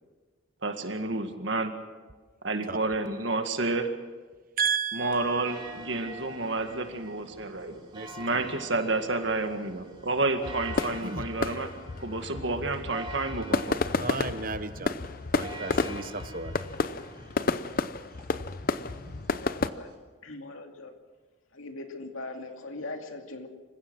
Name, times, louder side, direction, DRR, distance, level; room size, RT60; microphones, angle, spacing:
voice 1, 0.6-1.7 2.4-3.9 4.9-7.8 8.2-11.7 12.0-13.8, right 3 dB, 60° right, 6 dB, 1.9 m, -30 dB
voice 2, 4.6-5.5 7.9-8.5 11.0-11.2 14.0-15.0 15.3-16.5, right 5 dB, 40° right, 11 dB, 1.0 m, -33 dB
sound 1, 5.1-20.0, right 2 dB, 25° right, 3.4 m, -46 dB
sound 2, 10.4-19.7, left 3 dB, 45° left, 0.6 m, -31 dB
voice 3, 19.4-19.9 20.2-20.9 21.5-23.5, left 2 dB, 80° left, 4 dB, 2.5 m, -40 dB
27.5 x 15.5 x 6.3 m, 1.4 s
head